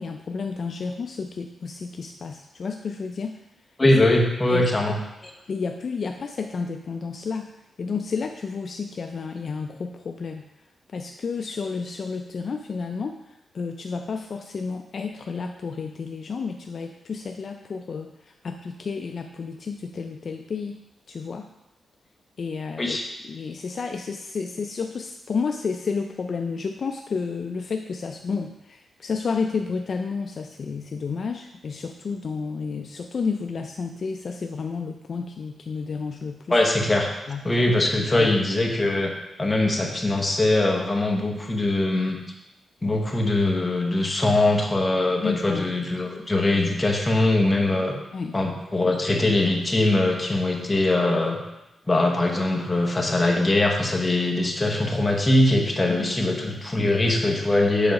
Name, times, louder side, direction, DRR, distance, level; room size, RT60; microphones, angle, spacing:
voice 1, 0.0-3.4 4.5-4.6 4.9-5.0 5.5-7.5 7.8-10.4 10.9-20.8 21.1-21.5 22.4-23.0 23.2-36.6 37.3-37.5 38.1-38.3 45.2-45.7 48.1-48.4 55.9-56.2, left 5 dB, 45° left, 4 dB, 0.3 m, -31 dB
voice 2, 3.8-5.0 22.8-23.0 36.5-37.1 37.4-39.1 39.4-42.2 42.8-47.9 48.3-51.4 51.9-57.9, left 2 dB, 15° left, 1 dB, 0.9 m, -22 dB
6.9 x 3.8 x 5.2 m, 0.92 s
wide cardioid pair, 165°, 0 cm